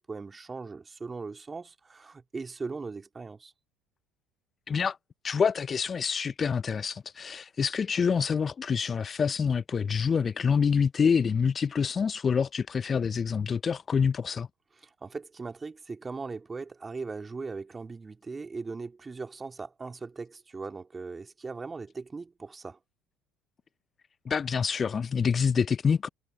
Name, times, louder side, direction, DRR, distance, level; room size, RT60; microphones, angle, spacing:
voice 1, 0.0-3.5 14.8-22.8, right 4 dB, 25° right, 2.8 m, -39 dB
voice 2, 5.2-14.5 24.3-26.1, left 6 dB, 35° left, 0.4 m, -26 dB
figure-of-eight pair, 60°, 0 cm